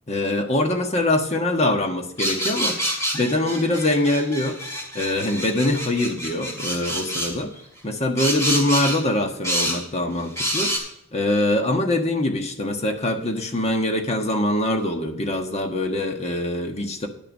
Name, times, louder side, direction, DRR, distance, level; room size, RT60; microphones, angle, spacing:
voice 1, 0.1-4.6 4.9-7.5 7.8-10.7 11.1-17.1, left 1 dB, 35° left, 5 dB, 1.3 m, -23 dB
sound 1, 2.2-7.3 8.2-9.0 9.4-9.8 10.4-10.8, equal, 15° left, 3.1 m, -27 dB
10.5 x 6.6 x 5.3 m, 0.75 s
head